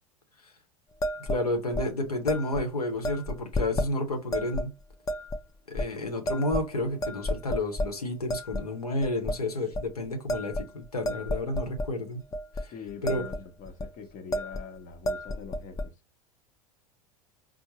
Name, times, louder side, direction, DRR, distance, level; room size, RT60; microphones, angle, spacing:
sound 1, 1.0-1.4 1.7-1.9 2.3-2.6 3.0-3.9 4.3-4.7 5.1-5.4 5.8-5.9 6.3-6.7 7.0-7.9 8.3-8.6 9.0-9.4 9.7-9.9 10.3-11.9 12.3-12.6 12.9-13.4 13.7-13.9 14.3-14.7 14.9-15.9, left 1 dB, 20° left, 0.5 m, -31 dB
voice 1, 1.2-4.7 5.7-12.2 12.5-12.7 13.0-13.2, left 2 dB, 90° left, 0.8 m, -31 dB
voice 2, 12.7-15.8, left 5 dB, 45° left, 0.9 m, -43 dB
4.3 x 2.0 x 3.0 m
figure-of-eight pair, 80°, 19 cm